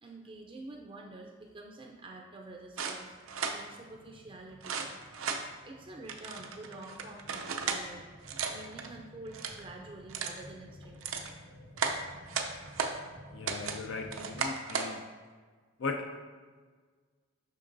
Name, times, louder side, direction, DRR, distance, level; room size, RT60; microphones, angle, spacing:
voice 1, 0.0-4.8 5.6-8.0 8.5-11.3, right 2 dB, 25° right, 0 dB, 0.4 m, -48 dB
sound 1, 2.8-3.6 4.6-5.4 6.1-7.8 8.2-8.9 9.3-9.6 10.1-10.4 10.8-11.3 11.8-13.0 13.5-13.8 14.1-14.9, right 5 dB, 80° right, 0.5 m, -35 dB
sound 2, 3.0-14.4, left 1 dB, 80° left, 1.6 m, -54 dB
voice 2, 13.3-15.1 15.8-16.2, left 3 dB, 60° left, 4 dB, 0.4 m, -38 dB
6.6 x 5.9 x 2.6 m, 1.5 s
head